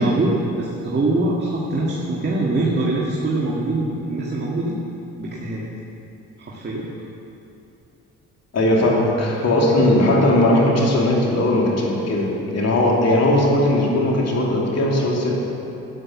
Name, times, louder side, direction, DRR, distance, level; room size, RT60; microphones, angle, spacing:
voice 1, 0.0-4.8 5.2-5.6 6.4-6.9, right 2 dB, 35° right, -4 dB, 2.0 m, -23 dB
voice 2, 8.5-15.3, left 1 dB, 60° left, -2 dB, 3.0 m, -18 dB
12.5 x 9.4 x 7.3 m, 2.9 s
cardioid pair, 90°, 30 cm